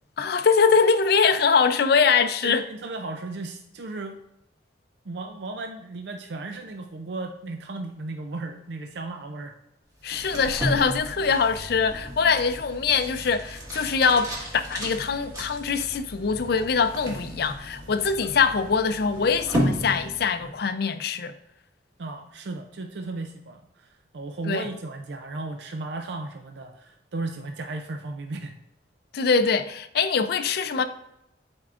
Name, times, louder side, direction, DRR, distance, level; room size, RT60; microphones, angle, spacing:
voice 1, 0.2-2.6 10.0-14.3 14.7-21.3 24.5-24.7 29.1-30.9, left 5 dB, 60° left, 0.4 m, -23 dB
voice 2, 2.4-4.2 5.0-9.5 22.0-28.6, right 2 dB, 70° right, 0.5 m, -35 dB
sound 1, 10.0-20.6, equal, 20° right, 1.7 m, -34 dB
10.5 x 4.4 x 2.5 m
head